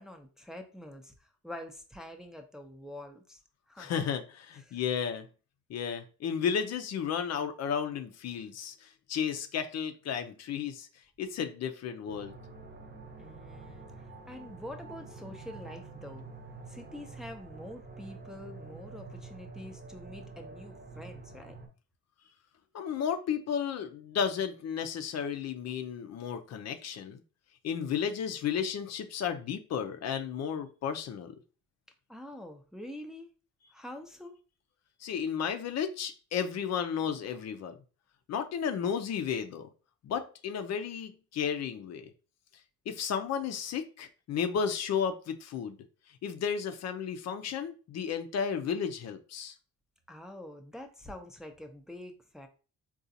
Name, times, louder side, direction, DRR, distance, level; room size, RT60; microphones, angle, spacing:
voice 1, 0.0-3.4 3.7-4.0 4.7-4.8 13.2-16.2 16.7-21.5 32.1-33.3 33.7-34.3 50.1-52.5, left 1 dB, ahead, 3 dB, 0.5 m, -46 dB
voice 2, 3.8-5.3 5.7-10.9 11.2-12.4 22.7-27.2 27.6-31.3 35.0-37.8 38.3-39.7 40.0-42.1 42.9-45.8 46.2-49.6, left 7 dB, 60° left, 7 dB, 0.5 m, -33 dB
sound 1, 12.1-21.7, right 3 dB, 35° right, 0.7 m, -47 dB
3.8 x 2.4 x 2.7 m, 0.35 s
cardioid pair, 90°, 30 cm